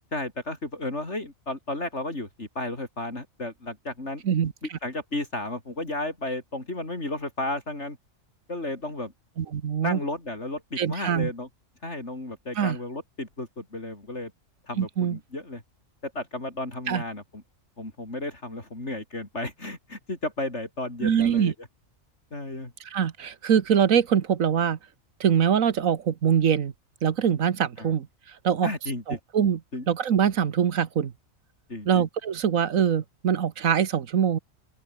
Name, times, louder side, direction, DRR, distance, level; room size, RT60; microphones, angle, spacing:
voice 1, 0.1-4.2 4.8-8.0 8.5-9.1 9.8-11.5 11.8-14.3 14.7-15.6 16.0-17.2 17.8-21.5 22.3-22.7 27.8-27.9 28.6-29.2 29.7-29.9 31.7-32.0, left 2 dB, 55° left, 5.2 m, -33 dB
voice 2, 9.4-10.0 10.8-11.3 12.6-12.8 14.8-15.2 16.9-17.0 21.0-21.5 22.8-24.8 25.2-26.7 27.0-28.1 28.4-28.7 29.1-29.6 29.9-31.1 31.8-34.4, right 8 dB, 80° right, 1.6 m, -23 dB
open air
omnidirectional pair, 1.4 m